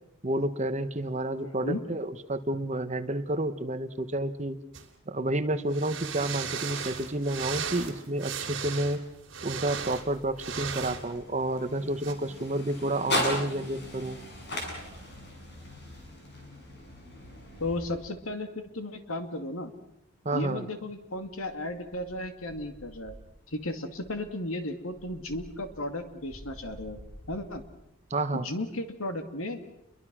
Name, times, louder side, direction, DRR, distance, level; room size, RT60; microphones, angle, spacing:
voice 1, 0.2-4.6 5.1-9.0 9.4-14.2 20.2-20.6 28.1-28.5, right 1 dB, 30° right, 10 dB, 1.1 m, -30 dB
voice 2, 1.4-1.8 17.6-19.7 20.3-23.2 23.5-27.0 27.3-27.6 28.3-29.6, left 1 dB, 75° left, 7 dB, 2.3 m, -35 dB
sound 1, 4.7-4.9 5.7-11.0 12.0-12.1, right 7 dB, 60° right, 3.1 m, -36 dB
sound 2, 10.2-18.4, left 1 dB, 50° left, 7.5 m, -37 dB
sound 3, 21.3-23.7 23.9-27.8, equal, 5° right, 7.1 m, -50 dB
29.5 x 23.0 x 6.2 m, 0.81 s
head